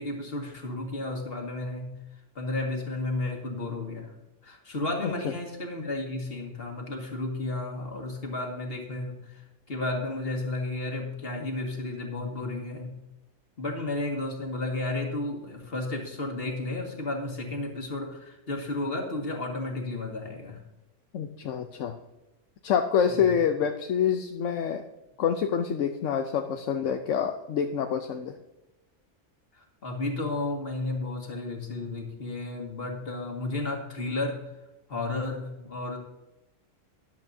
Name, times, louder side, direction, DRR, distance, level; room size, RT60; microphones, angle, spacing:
voice 1, 0.0-2.0 2.4-4.2 4.4-13.0 13.6-20.6 23.1-23.3 29.5-34.5 34.9-36.0, left 2 dB, 50° left, 1 dB, 2.0 m, -33 dB
voice 2, 21.1-22.0 22.6-24.8 25.2-28.4, left 7 dB, 75° left, 6 dB, 1.0 m, -27 dB
13.5 x 11.0 x 2.7 m, 0.99 s
omnidirectional pair, 1.3 m